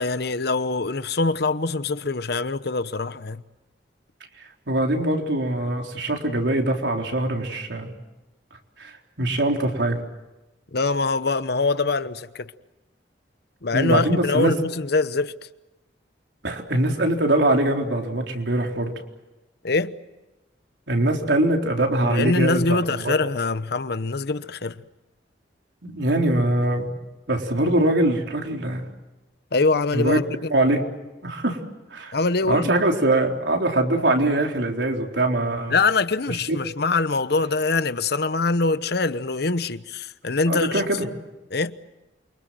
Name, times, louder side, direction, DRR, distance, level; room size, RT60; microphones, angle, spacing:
voice 1, 0.0-3.4 10.7-12.5 13.6-15.3 19.6-19.9 22.0-24.7 29.5-30.5 32.1-32.8 35.7-40.8 41.5-41.8, left 3 dB, 65° left, 1.0 m, -23 dB
voice 2, 4.7-7.9 8.8-10.0 13.7-14.6 16.4-18.9 20.9-23.1 25.8-26.9 27.3-28.8 29.9-30.2 30.5-30.8 31.2-31.6 31.9-32.1 32.4-35.8 36.5-36.6 40.5-41.1, right 1 dB, 85° right, 4.0 m, -22 dB
28.5 x 25.0 x 7.7 m
head